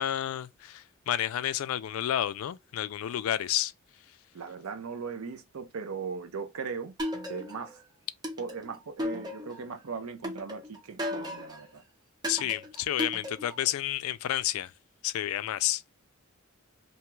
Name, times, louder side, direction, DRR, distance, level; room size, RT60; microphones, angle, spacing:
voice 1, 0.0-3.7 12.3-14.7 15.0-15.9, left 12 dB, 80° left, 0.3 m, -30 dB
voice 2, 4.3-6.9 7.3-7.8 8.4-11.8, right 5 dB, 90° right, 0.6 m, -38 dB
sound 1, 7.0-7.8 8.2-9.7 10.2-11.7 12.2-13.7, left 1 dB, 20° right, 0.6 m, -35 dB
2.8 x 2.3 x 3.0 m
head